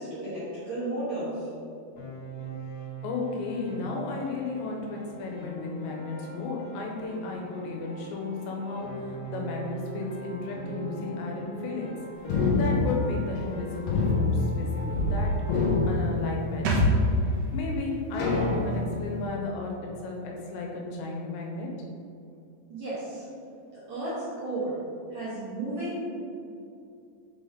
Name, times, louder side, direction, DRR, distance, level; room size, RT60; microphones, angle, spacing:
voice 1, 0.0-1.5 22.7-23.2 23.7-24.8 25.1-26.0, right 2 dB, 60° right, -11 dB, 2.0 m, -33 dB
Piano, 2.0-15.7, right 1 dB, 55° left, 2.2 m, -41 dB
voice 2, 3.0-11.9 12.5-15.3 15.8-16.8 17.5-21.7, left 3 dB, 90° left, 0 dB, 3.1 m, -34 dB
sound 1, 12.3-13.5 13.9-15.2 15.4-16.7 17.3-17.4 18.2-19.0, left 3 dB, 70° left, 2.1 m, -26 dB
sound 2, 16.7-20.2 20.4-20.5, equal, 80° right, 1.9 m, -29 dB
6.9 x 4.2 x 3.7 m, 2.6 s
omnidirectional pair, 4.9 m